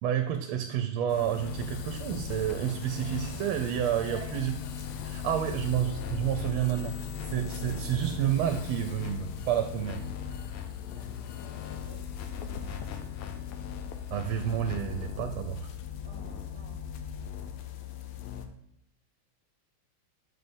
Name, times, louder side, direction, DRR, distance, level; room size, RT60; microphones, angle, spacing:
voice 1, 0.0-4.5 5.0-10.0 14.1-15.7, right 10 dB, 90° right, 6 dB, 1.5 m, -30 dB
sound 1, 1.1-18.5, left 7 dB, 90° left, 1.5 m, -38 dB
voice 2, 4.0-4.4 5.6-5.7 10.9-12.0 12.3-13.6 16.0-16.9, right 2 dB, 35° right, -1 dB, 1.3 m, -51 dB
7.7 x 5.6 x 2.6 m, 0.79 s
omnidirectional pair, 2.3 m